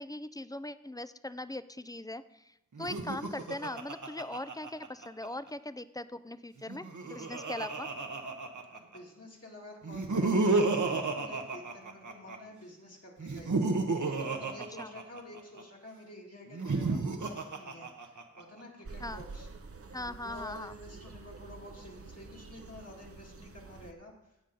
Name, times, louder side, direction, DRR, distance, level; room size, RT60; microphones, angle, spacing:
voice 1, 0.0-7.9 14.8-14.9 19.0-19.2 19.9-20.7, left 1 dB, 15° left, 14 dB, 0.4 m, -40 dB
Laughter, 2.7-5.3 6.6-9.0 9.8-12.4 13.2-15.6 16.5-18.4, right 3 dB, 85° right, 1.0 m, -32 dB
voice 2, 8.7-13.8 14.0-19.5 19.9-24.1, left 2 dB, 55° left, -2 dB, 2.3 m, -50 dB
sound 1, 18.8-23.9, right 4 dB, 50° right, 0.8 m, -48 dB
16.5 x 5.6 x 3.9 m, 0.88 s
wide cardioid pair, 50°, 29 cm